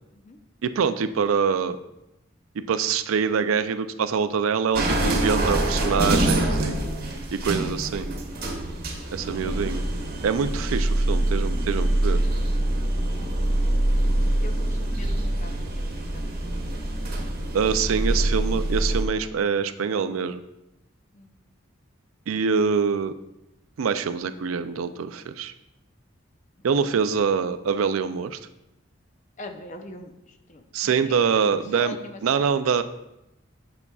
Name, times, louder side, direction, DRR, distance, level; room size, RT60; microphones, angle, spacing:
voice 1, 0.6-1.8 2.6-6.8 7.3-8.1 9.1-9.8 10.2-12.2 17.5-20.4 22.3-23.1 23.8-25.5 26.6-28.4 30.7-32.0 32.2-32.8, right 6 dB, 85° right, 11 dB, 0.4 m, -24 dB
sound 1, 4.7-19.0, right 1 dB, 45° right, 1.1 m, -25 dB
voice 2, 9.2-9.6 13.1-13.7 14.4-16.8 21.1-21.4 29.4-32.5, left 1 dB, 35° left, 6 dB, 0.6 m, -43 dB
8.3 x 6.7 x 2.3 m, 0.91 s
head